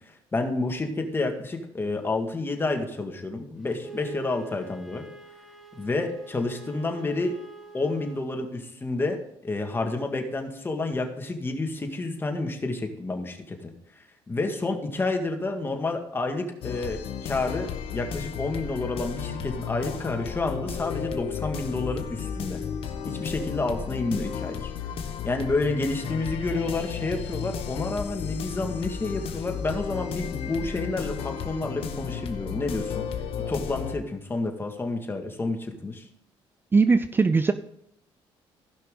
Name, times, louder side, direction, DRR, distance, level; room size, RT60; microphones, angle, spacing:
voice 1, 0.3-5.0 5.8-7.4 7.7-13.7 14.3-22.6 23.1-24.7 25.2-33.0 33.5-36.0, left 2 dB, 20° left, 4 dB, 1.9 m, -29 dB
Wind instrument woodwind instrument, 3.8-8.3, right 3 dB, ahead, 1.7 m, -44 dB
sound 1, 16.6-33.9, left 7 dB, 65° left, 1.2 m, -33 dB
voice 2, 36.7-37.5, right 4 dB, 20° right, 11 dB, 0.5 m, -20 dB
16.0 x 5.8 x 3.8 m, 0.77 s
cardioid pair, 95°, 10 cm